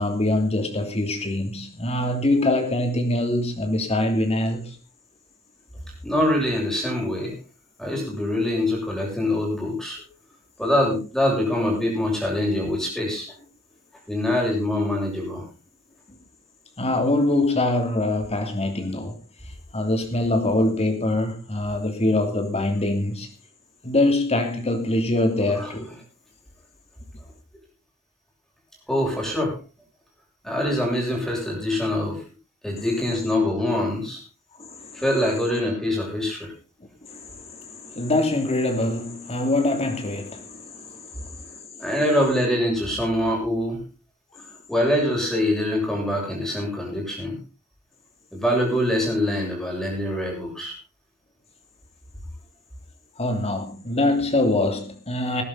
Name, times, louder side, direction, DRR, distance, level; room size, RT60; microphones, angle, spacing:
voice 1, 0.0-4.8 16.8-19.2 19.7-23.3 23.8-25.9 34.6-35.0 37.1-41.8 44.4-44.5 53.2-55.4, left 2 dB, 30° left, 2.9 m, -24 dB
voice 2, 6.0-7.4 7.8-10.0 10.6-13.3 14.1-15.4 25.6-25.7 28.9-29.5 30.4-32.2 32.6-34.2 34.9-36.5 41.8-43.8 44.7-47.4 48.3-50.7, left 1 dB, ahead, 7.2 m, -24 dB
19.5 x 11.0 x 4.0 m
head